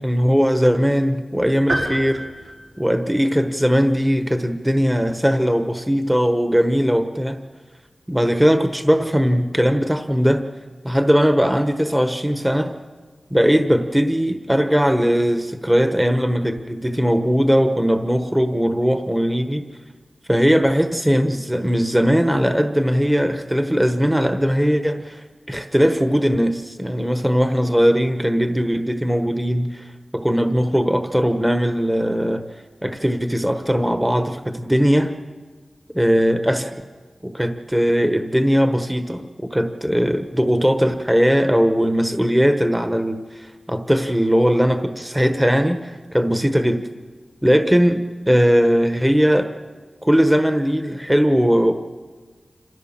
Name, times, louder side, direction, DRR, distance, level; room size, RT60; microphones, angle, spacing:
voice 1, 0.0-2.2 2.8-7.4 8.1-10.4 10.8-12.7 13.3-19.7 20.3-29.9 30.1-32.4 32.8-35.1 35.9-36.8 37.2-46.8 47.4-49.5 50.0-51.7, equal, 10° right, 7 dB, 1.2 m, -19 dB
sound 1, 1.7-3.5, right 1 dB, 70° right, 5.7 m, -28 dB
28.0 x 15.5 x 7.4 m, 1.4 s
wide cardioid pair, 80°, 0 cm